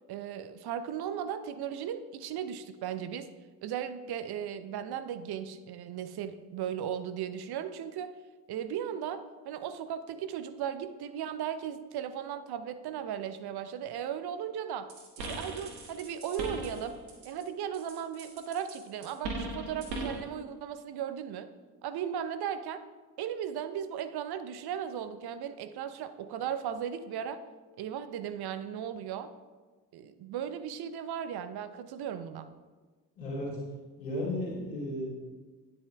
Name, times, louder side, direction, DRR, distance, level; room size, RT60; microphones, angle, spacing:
voice 1, 0.1-3.3 3.6-8.1 8.5-14.9 15.2-17.0 17.2-21.5 21.8-22.8 23.2-27.4 27.8-29.3 29.9-32.5, right 9 dB, 50° right, 11 dB, 0.8 m, -36 dB
sound 1, 14.9-17.4 17.7-20.3, right 2 dB, 85° right, 1.3 m, -39 dB
voice 2, 33.2-33.6 34.0-35.0, left 1 dB, 85° left, -5 dB, 2.8 m, -34 dB
9.7 x 9.3 x 3.4 m, 1.4 s
figure-of-eight pair, 45°, 49 cm